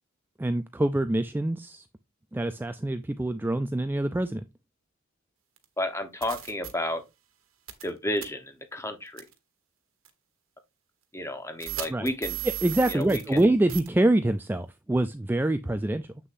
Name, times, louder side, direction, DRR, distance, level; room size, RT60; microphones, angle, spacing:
voice 1, 0.4-1.8 2.3-4.5 11.9-12.1 12.4-16.0, right 1 dB, 10° right, 0.3 m, -25 dB
sound 1, 5.6-5.7 6.2-6.7 7.7-7.9 8.2-8.3 9.2-9.3 10.1-10.2 11.6-13.4 13.7-13.9, right 12 dB, 75° right, 1.3 m, -35 dB
voice 2, 5.8-7.0 7.8-9.2 11.1-12.4 12.9-13.2, left 1 dB, 15° left, 1.1 m, -31 dB
7.6 x 6.6 x 2.6 m
head